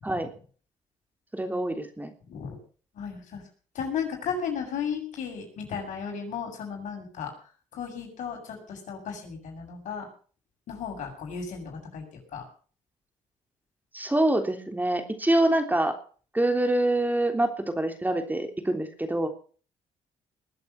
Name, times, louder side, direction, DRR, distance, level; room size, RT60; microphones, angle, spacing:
voice 1, 1.3-2.1 13.9-15.9 16.3-19.3, right 1 dB, 15° right, 6 dB, 3.4 m, -25 dB
voice 2, 2.3-2.6 2.9-3.4 3.7-7.3 7.7-10.1 10.7-12.0 12.3-12.4, left 6 dB, 75° left, 1 dB, 7.6 m, -34 dB
21.0 x 8.3 x 7.1 m, 0.42 s
supercardioid pair, 65°, 13 cm